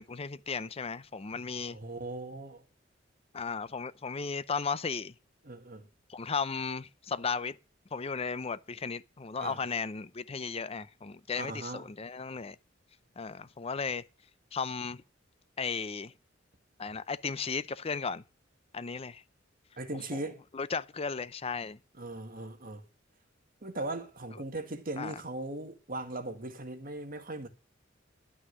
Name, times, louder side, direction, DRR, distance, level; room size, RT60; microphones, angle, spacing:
voice 1, 0.0-1.8 3.3-5.1 6.1-7.6 7.9-12.6 13.2-14.0 14.5-15.0 15.6-16.1 16.8-18.2 18.7-19.2 20.5-21.8 25.0-25.1, left 5 dB, 30° left, 0.5 m, -35 dB
voice 2, 1.7-2.6 5.4-5.9 9.4-9.6 11.3-11.9 19.8-20.4 22.0-22.8 23.6-27.5, right 2 dB, 45° right, 1.7 m, -39 dB
11.5 x 6.2 x 7.9 m
head